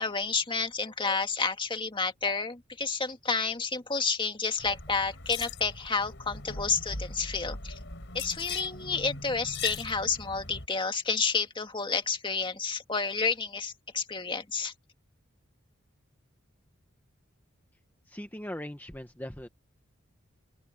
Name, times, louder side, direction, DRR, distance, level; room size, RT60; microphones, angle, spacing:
voice 1, 0.0-7.8 8.1-14.7, left 4 dB, 25° left, 1.9 m, -30 dB
sound 1, 4.6-10.7, left 4 dB, 60° left, 6.5 m, -40 dB
voice 2, 18.1-19.5, left 1 dB, 10° left, 1.3 m, -40 dB
open air
head